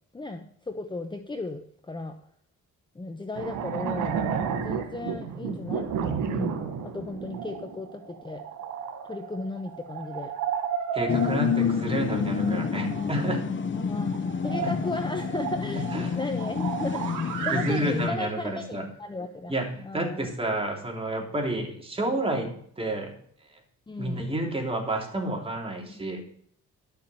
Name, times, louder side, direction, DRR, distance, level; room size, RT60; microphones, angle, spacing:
voice 1, 0.1-2.2 2.9-4.2 4.5-5.9 6.3-8.4 9.0-10.3 13.7-15.9 16.1-17.1 17.4-19.5 19.8-20.3 23.9-24.3 25.9-26.0, left 2 dB, 15° left, 6 dB, 1.0 m, -35 dB
sound 1, 3.3-17.8 19.7-19.8, right 7 dB, 85° right, 2.1 m, -33 dB
voice 2, 10.9-13.5 14.6-14.7 15.8-16.2 17.5-18.9 19.5-19.7 19.9-23.1 24.0-26.2, right 1 dB, 20° right, 1 dB, 3.4 m, -30 dB
sound 2, 11.1-18.1, left 6 dB, 40° left, 0.9 m, -28 dB
11.5 x 7.1 x 6.6 m, 0.63 s
cardioid pair, 90°, 30 cm